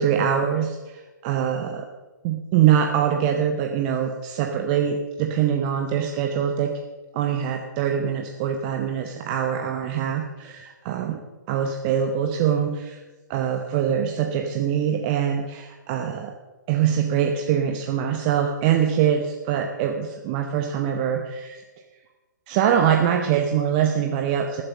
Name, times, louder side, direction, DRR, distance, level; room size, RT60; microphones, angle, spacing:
voice 1, 0.0-1.9 2.2-6.7 7.1-10.6 10.9-11.2 11.5-13.0 13.3-16.3 16.7-21.6 22.5-24.6, right 9 dB, 25° right, 3 dB, 0.9 m, -23 dB
20.5 x 7.7 x 5.4 m, 1.2 s
figure-of-eight pair, 130°, 10 cm